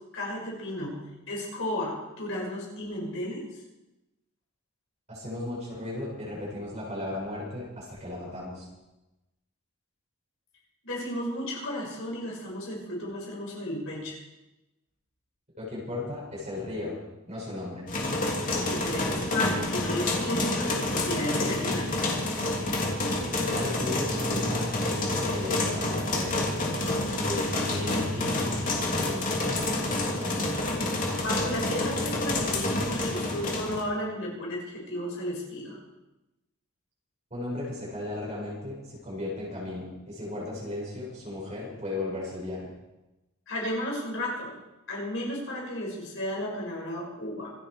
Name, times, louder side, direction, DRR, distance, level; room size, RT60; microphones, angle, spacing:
voice 1, 0.1-0.9 1.3-3.5 10.8-14.1 18.5-22.0 31.2-35.8 43.5-44.6 44.9-47.5, left 1 dB, 60° left, -3 dB, 6.1 m, -33 dB
voice 2, 5.1-8.7 15.6-17.9 23.3-26.5 27.2-30.5 37.3-42.7, left 2 dB, 30° right, -5 dB, 7.1 m, -36 dB
sound 1, 17.9-33.8, left 2 dB, 35° left, 3.3 m, -28 dB
27.0 x 10.0 x 4.8 m, 1.0 s
head